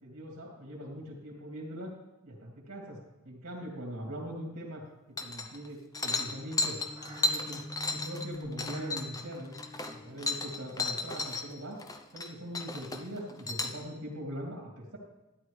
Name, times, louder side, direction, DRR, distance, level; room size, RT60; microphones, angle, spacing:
voice 1, 0.0-1.9 2.2-3.0 3.2-4.8 5.2-6.8 7.2-7.6 7.9-9.5 9.9-11.8 12.1-15.0, equal, 90° right, -2 dB, 2.6 m, -41 dB
sound 1, 5.2-5.7 5.9-11.4 11.8-12.3 12.5-13.8, left 2 dB, 15° left, 0.7 m, -33 dB
sound 2, 5.8-12.2, left 1 dB, 25° right, 3.6 m, -47 dB
12.5 x 10.5 x 3.3 m, 0.99 s
head